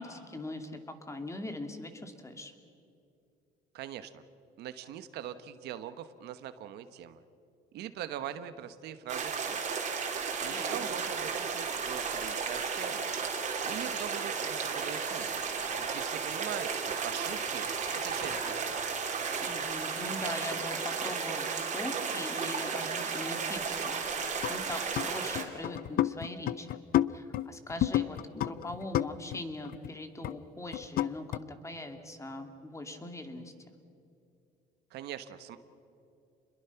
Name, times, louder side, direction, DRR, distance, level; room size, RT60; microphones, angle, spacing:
voice 1, 0.0-2.5 10.5-10.8 19.4-26.8 27.1-33.5, left 1 dB, 15° left, 6 dB, 2.4 m, -41 dB
voice 2, 3.7-4.2 4.6-7.2 7.7-9.7 10.4-13.1 13.6-15.4 15.8-17.7 17.9-18.9 34.9-35.6, right 10 dB, 80° right, 11 dB, 1.2 m, -42 dB
sound 1, 9.1-25.4, right 5 dB, 45° right, 3.6 m, -34 dB
sound 2, 13.3-15.0 15.4-16.1 16.7-18.9 19.2-19.6, left 2 dB, 40° left, 7.4 m, -50 dB
sound 3, 24.4-25.1 25.3-29.4 29.6-29.9 30.2-30.4 30.7-31.4, left 13 dB, 60° left, 0.6 m, -30 dB
29.0 x 22.0 x 5.9 m, 2.6 s
cardioid pair, 110°, 17 cm